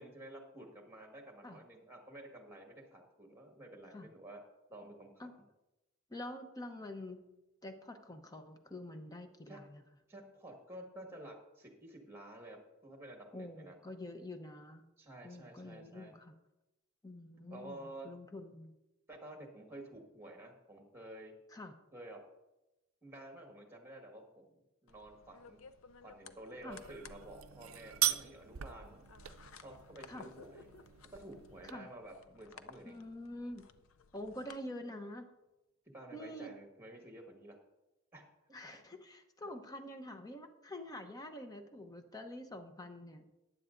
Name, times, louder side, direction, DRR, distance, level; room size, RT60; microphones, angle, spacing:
voice 1, 0.0-4.4 4.7-5.3 9.5-9.6 10.1-13.8 15.0-16.1 17.5-18.1 19.1-21.3 21.9-22.2 23.0-25.6 26.0-29.1 29.6-30.7 31.0-33.0 35.9-37.6 38.1-38.3 38.6-38.8, right 1 dB, 10° right, 2 dB, 1.6 m, -51 dB
voice 2, 6.1-7.2 7.6-9.8 13.3-14.9 15.2-16.3 17.0-18.7 21.5-21.7 26.6-26.8 30.1-30.3 31.6-31.9 32.8-33.7 34.1-35.3 36.1-36.5 38.5-43.3, left 1 dB, 20° left, 6 dB, 0.8 m, -46 dB
sound 1, 24.9-34.6, left 5 dB, 75° left, 0.5 m, -58 dB
sound 2, 26.7-31.7, right 12 dB, 80° right, 0.5 m, -40 dB
15.0 x 9.9 x 2.6 m, 0.99 s
head